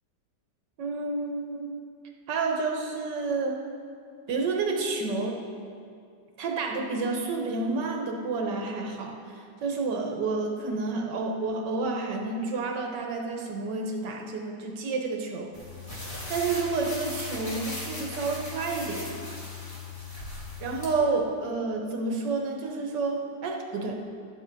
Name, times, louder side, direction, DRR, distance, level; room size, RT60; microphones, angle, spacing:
voice 1, 0.8-1.8 2.3-3.6 4.3-5.4 6.4-15.5 15.9-19.2 20.6-24.0, right 3 dB, 75° right, 2 dB, 1.8 m, -30 dB
sound 1, 15.5-20.9, left 3 dB, 20° left, 2.2 m, -38 dB
12.5 x 9.2 x 4.7 m, 2.4 s
omnidirectional pair, 1.9 m